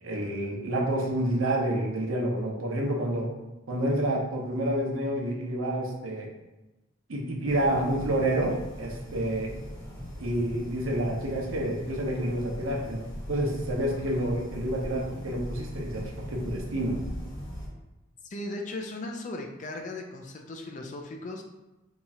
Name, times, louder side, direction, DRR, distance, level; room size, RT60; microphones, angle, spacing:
voice 1, 0.0-3.3 3.7-6.3 7.1-9.5 10.2-13.0 13.3-17.0, right 1 dB, 90° right, -1 dB, 0.8 m, -29 dB
sound 1, 7.5-17.7, equal, 20° left, 1.0 m, -39 dB
voice 2, 18.3-21.4, left 2 dB, 35° left, 2 dB, 0.4 m, -37 dB
2.9 x 2.4 x 4.1 m, 1.0 s
head